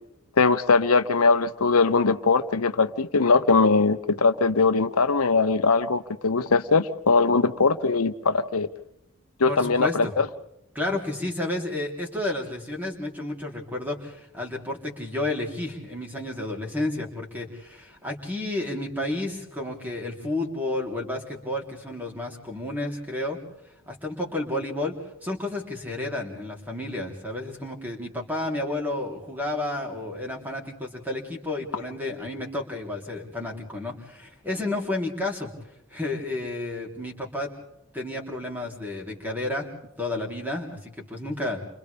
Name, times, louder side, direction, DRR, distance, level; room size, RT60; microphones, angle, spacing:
voice 1, 0.4-8.7 9.4-10.3, left 4 dB, 90° left, 1.0 m, -21 dB
voice 2, 9.5-10.1 10.7-23.4 23.9-24.9 25.2-35.5 35.9-37.5 37.9-39.7 40.0-41.6, left 2 dB, 10° right, 3.7 m, -31 dB
30.0 x 26.0 x 3.5 m
head